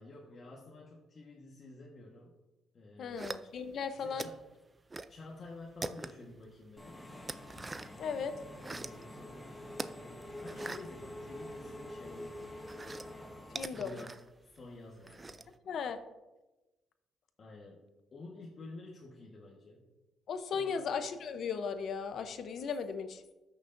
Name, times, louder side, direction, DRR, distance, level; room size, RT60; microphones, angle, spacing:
voice 1, 0.0-2.3 2.7-3.3 3.9-4.4 5.1-7.0 8.6-9.6 10.0-12.7 13.5-15.5 17.4-17.8 18.1-19.9 20.5-20.9, left 2 dB, 45° left, -3 dB, 1.4 m, -50 dB
voice 2, 3.0-4.3 8.0-8.4 13.5-14.0 15.7-16.0 20.3-23.2, left 6 dB, 65° left, 10 dB, 0.7 m, -36 dB
sound 1, 3.2-3.8 4.2-5.2 5.5-6.4 6.8-8.0 8.4-9.0 9.7-11.8 12.1-15.6, right 3 dB, 25° right, 0.4 m, -43 dB
Engine / Mechanisms, 6.8-13.6, left 1 dB, 5° left, 1.5 m, -46 dB
13.5 x 6.4 x 2.6 m, 1.1 s
cardioid pair, 90°, 0 cm